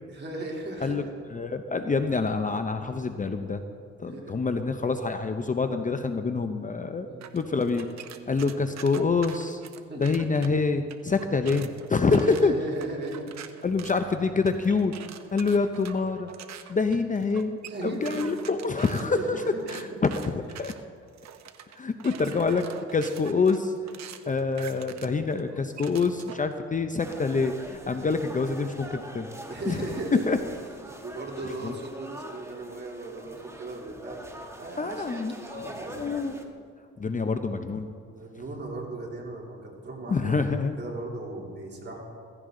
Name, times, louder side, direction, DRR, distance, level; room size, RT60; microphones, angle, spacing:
voice 1, 0.1-1.1 4.1-4.4 7.0-7.3 8.1-8.4 9.9-10.2 12.1-13.3 13.6-13.7 17.6-18.5 19.0-20.0 27.9-28.2 29.5-30.4 30.9-34.2 34.6-36.5 37.0-37.2 38.1-40.4 40.8-42.0, right 2 dB, 35° right, -2 dB, 3.2 m, -37 dB
voice 2, 1.3-3.6 4.0-7.1 7.3-7.9 8.3-9.6 10.0-12.5 13.6-15.0 15.3-16.3 16.7-19.4 19.7-20.7 21.8-22.7 22.9-24.0 24.3-29.3 29.7-29.8 30.1-30.4 31.6-31.7 34.8-36.5 37.0-37.9 40.1-40.7, left 4 dB, 25° left, 8 dB, 0.7 m, -26 dB
sound 1, 7.2-10.5 10.9-26.5, right 9 dB, 65° right, 0.9 m, -45 dB
sound 2, 27.0-36.4, right 1 dB, 10° right, 1.6 m, -44 dB
15.5 x 15.5 x 3.8 m, 2.2 s
cardioid pair, 90°, 30 cm